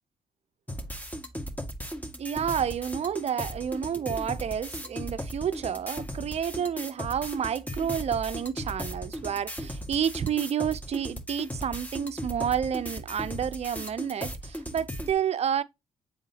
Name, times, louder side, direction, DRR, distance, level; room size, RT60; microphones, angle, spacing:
sound 1, 0.7-15.1, equal, 10° left, 1.9 m, -37 dB
voice 1, 2.2-15.6, right 8 dB, 50° right, 0.7 m, -30 dB
7.4 x 5.7 x 2.9 m
hypercardioid pair, 45°, 14 cm